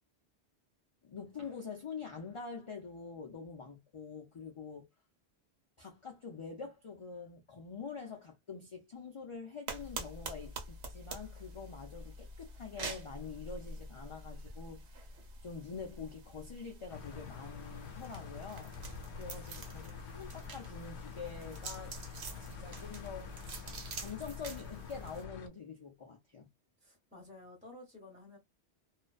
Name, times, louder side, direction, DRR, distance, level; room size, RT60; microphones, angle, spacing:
voice 1, 1.0-4.9 5.8-15.1 15.4-18.7 19.1-22.0 22.4-23.5 24.0-26.5, left 5 dB, 45° left, 0.4 m, -46 dB
sound 1, 9.7-25.2, right 2 dB, 80° right, 1.0 m, -46 dB
sound 2, 16.9-25.5, left 7 dB, 80° left, 0.9 m, -48 dB
voice 2, 19.3-20.0 26.8-28.4, left 2 dB, 5° right, 0.9 m, -54 dB
2.5 x 2.1 x 2.3 m
omnidirectional pair, 1.1 m